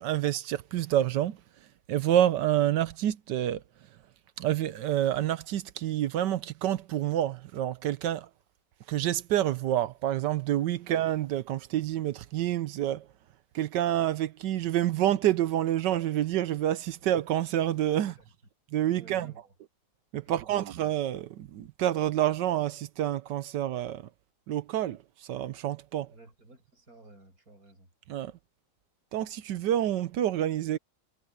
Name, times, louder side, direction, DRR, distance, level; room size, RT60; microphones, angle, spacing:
voice 1, 0.0-1.4 1.9-3.6 4.4-8.3 8.9-13.1 13.5-18.1 18.7-19.3 20.1-24.1 24.5-25.0 25.3-26.1 28.1-28.3 29.1-30.8, right 12 dB, 75° right, 1.3 m, -28 dB
voice 2, 18.9-19.5 20.2-20.6 26.0-27.9, right 2 dB, 50° right, 8.4 m, -54 dB
omnidirectional pair, 2.0 m